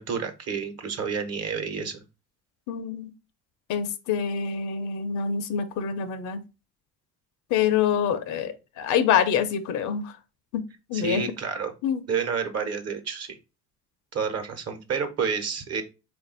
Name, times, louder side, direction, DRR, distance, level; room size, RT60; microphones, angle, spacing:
voice 1, 0.0-2.0 10.9-11.7 12.1-13.4 14.1-15.8, right 6 dB, 50° right, 1.1 m, -29 dB
voice 2, 2.7-3.1 3.7-6.4 7.5-10.1 10.5-10.6 10.9-11.2 11.8-12.0, left 8 dB, 70° left, 0.7 m, -26 dB
3.9 x 2.6 x 3.8 m
supercardioid pair, 85°, 31 cm